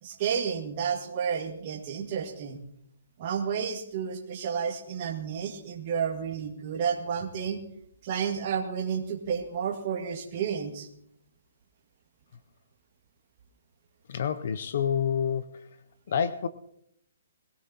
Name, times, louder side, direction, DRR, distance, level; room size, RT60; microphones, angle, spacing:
voice 1, 0.0-2.6 3.2-7.6 8.0-10.9, right 7 dB, 35° right, -1 dB, 1.9 m, -31 dB
voice 2, 14.1-15.7 16.1-16.5, left 7 dB, 50° left, 14 dB, 0.6 m, -28 dB
21.5 x 16.0 x 2.9 m, 0.76 s
hypercardioid pair, 170°, 0 cm